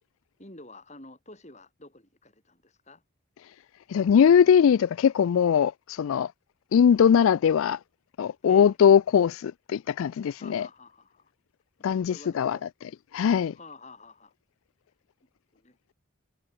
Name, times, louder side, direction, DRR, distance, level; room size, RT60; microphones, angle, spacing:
voice 1, 0.4-3.0 8.4-8.8 10.4-11.3 11.8-12.7 13.5-14.3 15.5-15.8, left 2 dB, 35° left, 7.4 m, -49 dB
voice 2, 3.9-6.3 6.7-7.8 8.2-10.7 11.8-12.6 13.1-13.5, left 7 dB, 75° left, 0.3 m, -21 dB
head